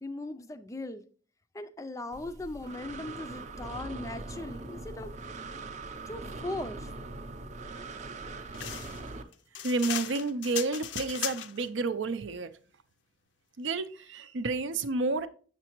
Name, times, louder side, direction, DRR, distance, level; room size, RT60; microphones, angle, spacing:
voice 1, 0.0-1.0 1.5-5.1 6.1-6.9, left 2 dB, 15° left, 0.3 m, -39 dB
Breathing, 2.1-9.2, right 3 dB, 40° right, 0.5 m, -41 dB
sound 1, 8.5-11.7, left 10 dB, 75° left, 0.5 m, -37 dB
voice 2, 9.6-12.5 13.6-15.3, right 3 dB, 80° right, 0.6 m, -30 dB
7.0 x 6.7 x 3.0 m
head